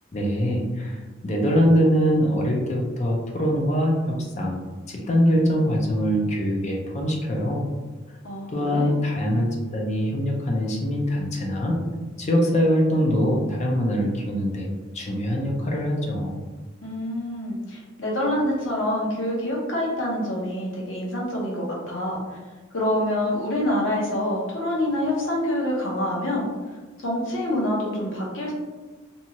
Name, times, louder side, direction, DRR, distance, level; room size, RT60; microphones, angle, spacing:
voice 1, 0.1-4.6 4.9-7.6 8.5-11.8 12.2-14.7 14.9-16.3, equal, 35° left, -1 dB, 0.5 m, -23 dB
voice 2, 8.2-8.9 16.8-22.2 22.7-26.5 27.0-28.5, left 1 dB, 70° left, -3 dB, 0.8 m, -26 dB
2.7 x 2.3 x 2.8 m, 1.3 s
head